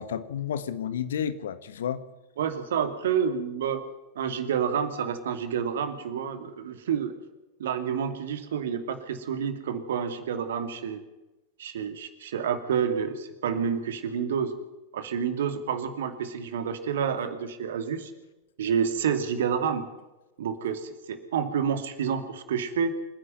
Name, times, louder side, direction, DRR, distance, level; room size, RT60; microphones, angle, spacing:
voice 1, 0.0-2.0, left 8 dB, 60° left, 13 dB, 1.5 m, -31 dB
voice 2, 2.4-3.8 4.2-7.1 7.6-11.0 11.6-14.5 14.9-18.1 18.6-19.9 20.4-23.0, right 7 dB, 60° right, 9 dB, 2.5 m, -29 dB
27.0 x 10.5 x 9.3 m, 1.0 s
figure-of-eight pair, 90°, 0 cm